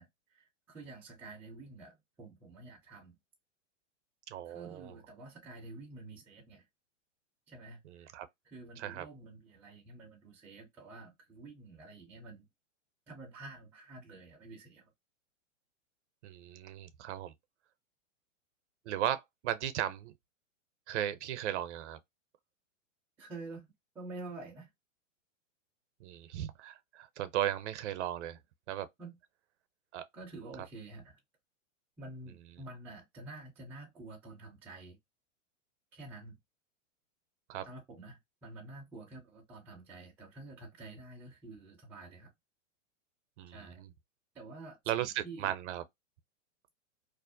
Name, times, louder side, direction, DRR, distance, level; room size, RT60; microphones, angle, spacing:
voice 1, 0.0-3.2 4.5-6.6 7.5-8.2 8.4-12.5 13.1-14.9 23.2-23.7 23.9-24.7 29.0-29.2 30.1-31.2 32.0-35.0 35.9-36.4 37.6-42.3 43.5-43.8 44.3-45.5, right 2 dB, 5° right, 0.3 m, -49 dB
voice 2, 4.3-4.9 7.8-8.3 8.8-9.0 16.2-17.3 18.9-20.1 20.9-22.0 26.0-28.4 28.7-28.9 29.9-30.0 37.5-37.7 43.4-43.9 44.9-45.8, right 12 dB, 65° right, 0.5 m, -36 dB
2.4 x 2.0 x 2.5 m
hypercardioid pair, 130°, 38 cm